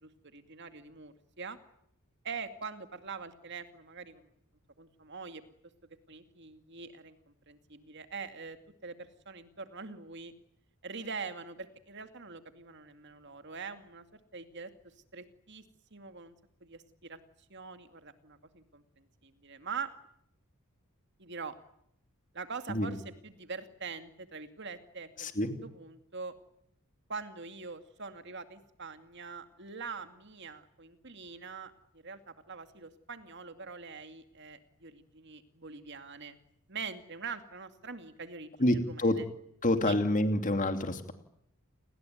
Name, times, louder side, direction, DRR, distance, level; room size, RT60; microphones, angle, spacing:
voice 1, 0.0-1.6 2.2-4.3 4.8-5.4 6.1-8.6 8.8-10.3 10.8-14.7 15.1-15.6 15.9-16.3 16.6-17.2 17.5-19.9 21.2-21.6 22.3-23.0 23.2-25.3 25.6-26.3 27.1-36.4 36.7-39.3 39.8-40.0, right 5 dB, 55° right, 9 dB, 2.4 m, -44 dB
voice 2, 25.2-25.5 38.6-39.2 39.6-41.1, left 1 dB, 35° left, 7 dB, 2.9 m, -27 dB
29.5 x 20.5 x 9.5 m, 0.76 s
head